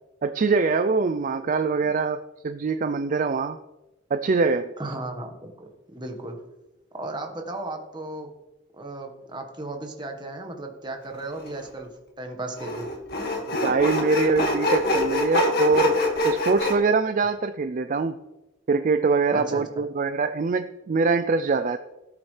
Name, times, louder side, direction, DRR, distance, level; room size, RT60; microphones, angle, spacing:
voice 1, 0.2-2.2 2.4-3.6 4.1-4.7 13.6-16.0 16.2-18.2 18.7-21.8, right 4 dB, 40° right, 10 dB, 0.4 m, -23 dB
voice 2, 4.8-6.4 6.9-8.3 8.7-11.9 12.2-12.9 19.3-19.6, right 2 dB, 20° right, 3 dB, 1.4 m, -35 dB
Sawing, 11.4-11.5 12.6-16.7, left 2 dB, 50° left, 1.9 m, -24 dB
17.5 x 7.3 x 3.3 m, 1.0 s
head